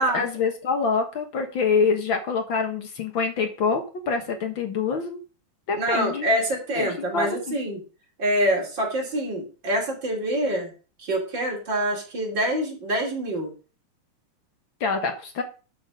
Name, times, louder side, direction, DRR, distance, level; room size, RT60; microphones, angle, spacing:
voice 1, 0.0-5.2 5.7-6.3 6.7-7.5 14.8-15.4, left 5 dB, 50° left, 6 dB, 1.5 m, -26 dB
voice 2, 5.7-7.8 8.2-10.7 11.0-13.5, right 1 dB, 35° right, -1 dB, 3.5 m, -25 dB
12.0 x 6.0 x 5.2 m, 0.35 s
omnidirectional pair, 3.9 m